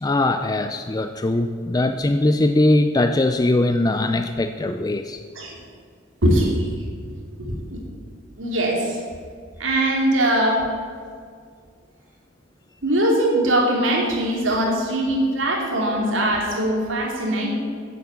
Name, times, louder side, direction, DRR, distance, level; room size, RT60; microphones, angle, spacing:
voice 1, 0.0-5.2, left 2 dB, 20° left, 8 dB, 0.4 m, -21 dB
voice 2, 6.2-6.7 7.4-7.8 8.4-9.0 9.6-10.6 12.8-17.5, right 1 dB, 80° right, -1 dB, 2.7 m, -21 dB
10.5 x 8.3 x 8.4 m, 2.1 s
head